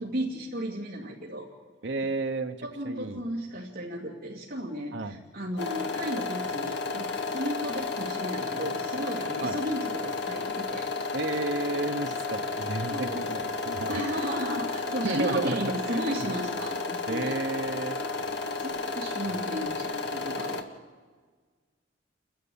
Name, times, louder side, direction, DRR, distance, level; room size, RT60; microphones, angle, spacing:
voice 1, 0.0-1.5 2.6-10.9 12.9-13.4 13.9-17.3 18.6-20.6, equal, 50° right, -4 dB, 2.5 m, -34 dB
voice 2, 1.8-3.2 4.9-5.2 9.4-9.6 11.1-14.0 15.0-16.0 17.1-18.0, right 2 dB, 70° right, 6 dB, 1.1 m, -32 dB
sound 1, 5.6-20.6, left 3 dB, 70° left, 1.7 m, -32 dB
29.5 x 11.0 x 8.7 m, 1.5 s
head